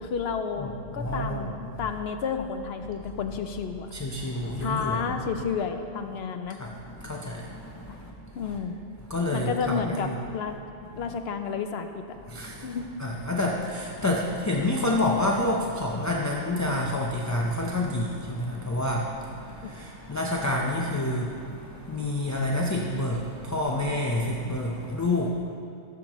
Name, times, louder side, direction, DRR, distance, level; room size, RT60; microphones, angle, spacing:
voice 1, 0.0-3.9 4.6-6.6 8.4-8.8 9.3-10.6 11.0-12.0 12.6-12.9 19.6-19.7, left 5 dB, 65° left, 7 dB, 0.8 m, -31 dB
voice 2, 0.6-1.8 3.9-5.3 6.6-8.6 9.0-10.2 10.9-11.2 12.3-25.3, left 1 dB, 25° left, -2 dB, 0.4 m, -29 dB
15.0 x 7.3 x 3.0 m, 2.5 s
omnidirectional pair, 1.3 m